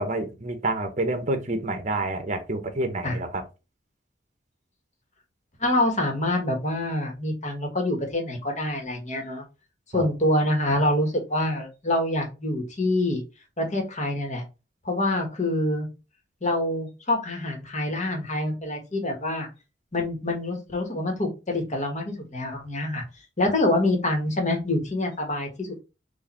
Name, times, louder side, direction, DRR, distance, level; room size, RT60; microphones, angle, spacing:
voice 1, 0.0-3.4 9.9-10.1, right 2 dB, 40° right, 0.9 m, -28 dB
voice 2, 5.6-9.4 9.9-13.2 13.6-14.4 14.8-15.9 16.4-19.5 19.9-23.0 23.4-25.8, left 1 dB, 40° left, 1.5 m, -26 dB
4.8 x 2.6 x 4.2 m
head